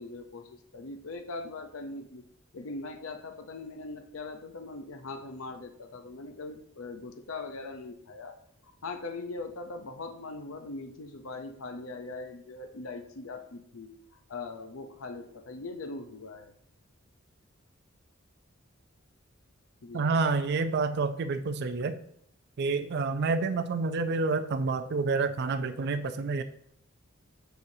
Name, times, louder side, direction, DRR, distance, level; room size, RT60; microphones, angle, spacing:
voice 1, 0.0-2.2 2.5-8.4 8.8-13.9 14.3-16.5 19.8-20.1, left 3 dB, 75° left, 7 dB, 0.6 m, -41 dB
voice 2, 19.9-21.9 22.6-26.4, right 4 dB, 55° right, 8 dB, 0.4 m, -28 dB
7.9 x 6.8 x 2.7 m, 0.70 s
head